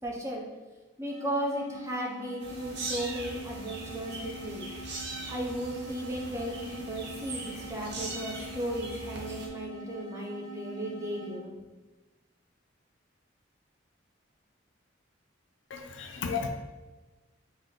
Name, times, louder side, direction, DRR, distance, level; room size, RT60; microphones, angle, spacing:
voice 1, 0.0-0.4 1.0-4.7 5.3-11.6, right 1 dB, 15° right, -2 dB, 0.6 m, -35 dB
sound 1, 1.1-11.5, right 1 dB, 25° left, 1.5 m, -44 dB
sound 2, 2.4-9.5, right 2 dB, 55° right, 0.6 m, -41 dB
voice 2, 15.7-16.5, left 6 dB, 70° left, 4 dB, 0.4 m, -33 dB
3.7 x 2.6 x 3.8 m, 1.2 s
head